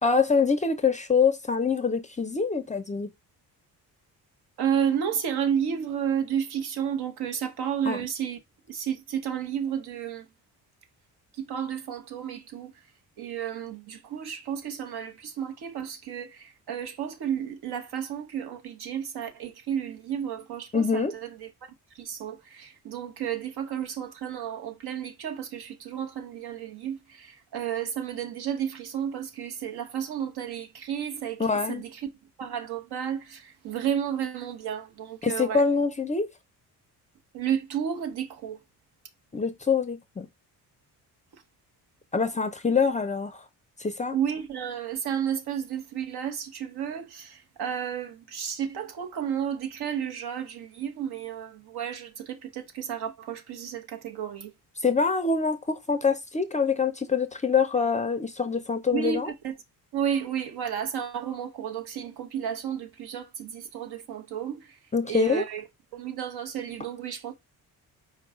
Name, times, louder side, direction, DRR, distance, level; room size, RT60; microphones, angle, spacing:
voice 1, 0.0-3.1 7.9-8.0 20.7-21.1 31.4-31.8 35.2-36.3 39.3-40.3 42.1-43.4 43.8-44.2 54.8-59.3 64.9-65.4, left 5 dB, 20° left, 0.4 m, -25 dB
voice 2, 4.6-8.4 8.7-10.3 11.3-12.7 13.2-21.5 21.9-32.1 32.4-35.6 37.3-38.6 44.1-54.5 58.9-59.5 59.9-64.8 65.1-65.7 65.9-67.3, right 8 dB, 75° right, 1.0 m, -32 dB
4.5 x 2.3 x 4.8 m
cardioid pair, 115°, 39 cm